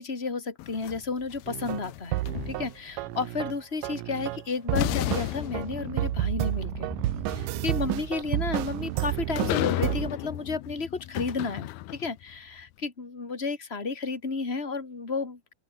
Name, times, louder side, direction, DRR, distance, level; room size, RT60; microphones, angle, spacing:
voice 1, 0.0-6.9 7.3-15.5, left 4 dB, 15° left, 3.2 m, -32 dB
sound 1, 0.6-3.0 4.2-4.3 4.8-12.2, left 16 dB, 85° left, 2.8 m, -34 dB
sound 2, 1.5-2.7 3.0-4.4 4.7-10.1, right 18 dB, 80° right, 2.1 m, -31 dB
open air
omnidirectional pair, 4.4 m